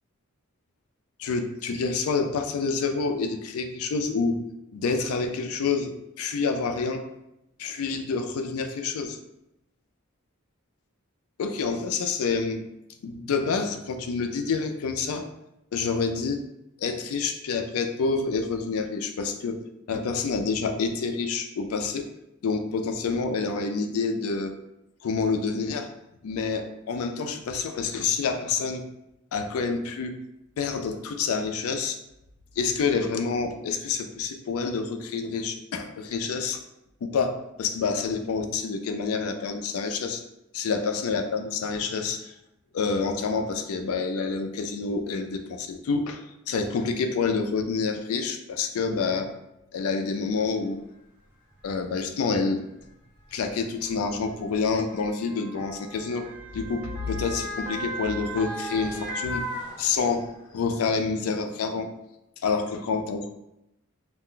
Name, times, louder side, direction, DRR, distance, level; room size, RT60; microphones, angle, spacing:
voice 1, 1.2-4.4 4.7-7.0 7.6-9.2 11.4-12.7 13.0-15.3 15.7-16.4 16.8-19.6 19.9-22.1 22.4-24.6 25.0-25.9 26.2-28.8 29.3-30.2 30.6-32.0 32.6-36.6 37.0-40.2 40.5-42.3 42.7-49.3 49.7-50.8 51.6-52.6 53.3-56.3 56.5-59.4 59.8-61.9 62.4-63.3, left 4 dB, 80° left, 6 dB, 0.4 m, -28 dB
Motor vehicle (road) / Siren, 50.5-50.6 51.5-51.7 52.8-60.4 60.8-60.9, right 1 dB, 10° right, 0.7 m, -37 dB
2.4 x 2.2 x 3.7 m, 0.86 s
head